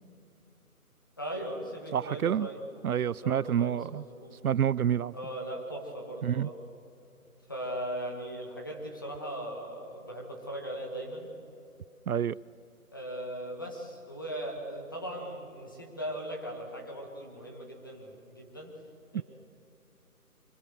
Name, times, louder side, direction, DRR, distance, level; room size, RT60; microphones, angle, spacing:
voice 1, 1.2-2.6 3.0-4.4 5.1-6.6 7.5-11.3 12.9-18.8 19.1-19.2, right 1 dB, 15° left, 0 dB, 1.5 m, -39 dB
voice 2, 1.9-2.5 2.8-4.0 4.4-5.1 6.2-6.5 12.1-12.4 19.1-19.2, right 9 dB, 70° right, 22 dB, 0.5 m, -28 dB
24.0 x 24.0 x 6.8 m, 2.7 s
hypercardioid pair, 180°, 45 cm